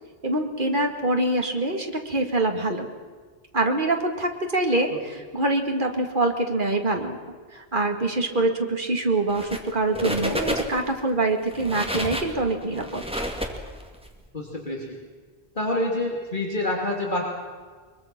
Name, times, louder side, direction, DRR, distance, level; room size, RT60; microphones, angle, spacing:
voice 1, 0.2-2.9 3.5-7.2 7.5-13.0, right 2 dB, 50° right, 4 dB, 2.3 m, -25 dB
sound 1, 9.3-9.7 9.9-10.9 11.4-14.1, equal, 5° right, 2.1 m, -30 dB
voice 2, 14.3-15.0 15.5-17.2, left 1 dB, 50° left, -1 dB, 3.0 m, -27 dB
23.0 x 22.5 x 6.1 m, 1.5 s
omnidirectional pair, 1.1 m